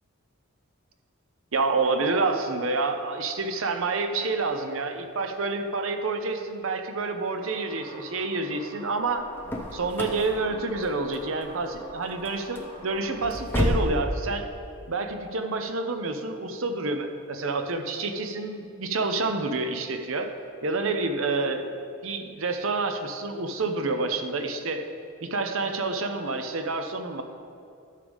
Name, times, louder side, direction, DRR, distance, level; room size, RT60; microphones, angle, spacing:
voice 1, 1.5-9.3 9.7-14.5 14.9-20.3 20.6-21.7 22.0-24.8 25.2-27.2, right 3 dB, 70° right, 6 dB, 0.7 m, -28 dB
sound 1, 7.3-13.2, equal, 20° right, 1.9 m, -45 dB
sound 2, 9.0-14.0, equal, 10° left, 0.8 m, -31 dB
12.0 x 6.7 x 3.5 m, 2.5 s
head